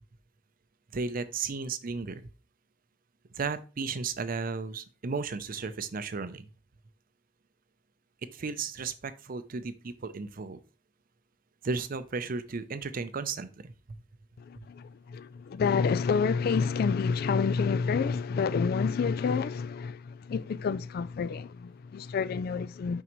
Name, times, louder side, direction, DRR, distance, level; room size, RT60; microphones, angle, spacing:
voice 1, 0.9-2.3 3.3-6.5 8.3-10.6 11.6-13.7 14.6-14.7, right 4 dB, 50° right, 0.5 m, -34 dB
voice 2, 14.4-23.0, left 5 dB, 55° left, 0.3 m, -28 dB
5.8 x 5.4 x 3.0 m
head